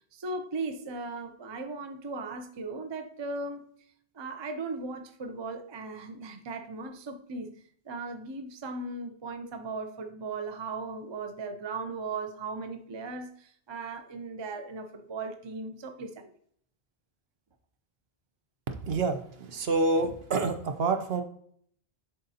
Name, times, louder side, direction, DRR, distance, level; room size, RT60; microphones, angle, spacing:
voice 1, 0.1-3.7 4.1-7.5 7.9-16.3, right 3 dB, 35° right, 0.5 m, -37 dB
voice 2, 18.8-21.2, right 3 dB, 65° right, 1.0 m, -27 dB
11.0 x 4.0 x 2.8 m
omnidirectional pair, 1.1 m